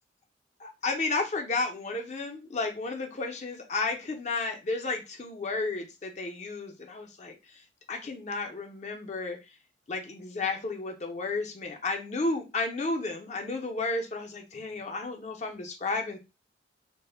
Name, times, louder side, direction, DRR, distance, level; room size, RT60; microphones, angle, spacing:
voice 1, 0.6-7.3 7.9-9.4 9.9-16.2, left 3 dB, 40° left, 3 dB, 0.4 m, -32 dB
2.1 x 2.0 x 3.2 m, 0.26 s
head